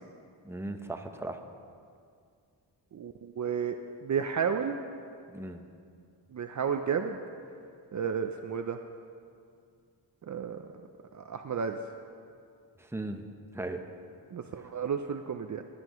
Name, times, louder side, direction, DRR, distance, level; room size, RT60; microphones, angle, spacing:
voice 1, 0.4-1.4 5.3-5.6 12.8-13.3 13.5-13.8, right 2 dB, 5° right, 6 dB, 0.8 m, -37 dB
voice 2, 2.9-3.8 4.0-4.8 6.3-7.2 7.9-8.8 10.3-10.7 11.1-11.8 14.3-15.6, right 7 dB, 45° right, 6 dB, 0.5 m, -32 dB
18.5 x 9.6 x 3.0 m, 2.3 s
cardioid pair, 80°, 42 cm